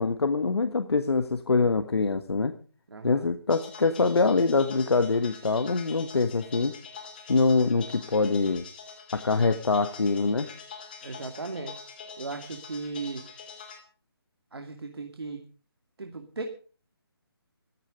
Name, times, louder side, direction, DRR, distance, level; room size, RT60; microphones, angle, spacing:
voice 1, 0.0-2.5 3.0-6.7 7.3-8.6 9.1-10.5, left 4 dB, 90° left, 8 dB, 1.5 m, -24 dB
voice 2, 2.9-3.3 11.0-11.8 12.2-13.2 14.5-15.4 16.0-16.5, right 3 dB, 75° right, 5 dB, 2.5 m, -36 dB
sound 1, 3.5-13.8, left 5 dB, 20° left, 2.7 m, -45 dB
15.5 x 14.0 x 5.2 m, 0.39 s
hypercardioid pair, 180°, 13 cm